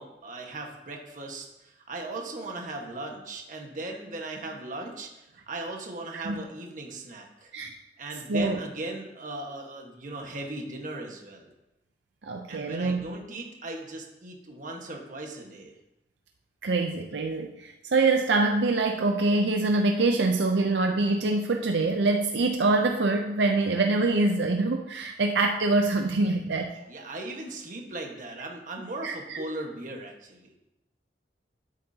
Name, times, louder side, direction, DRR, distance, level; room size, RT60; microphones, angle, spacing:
voice 1, 0.0-7.5 8.0-11.5 12.5-15.7 26.9-30.5, right 2 dB, 45° right, 2 dB, 1.4 m, -38 dB
voice 2, 8.3-8.6 12.2-13.1 16.6-26.7 29.0-29.4, right 3 dB, 80° right, 4 dB, 0.6 m, -25 dB
11.5 x 8.2 x 2.8 m, 0.92 s
head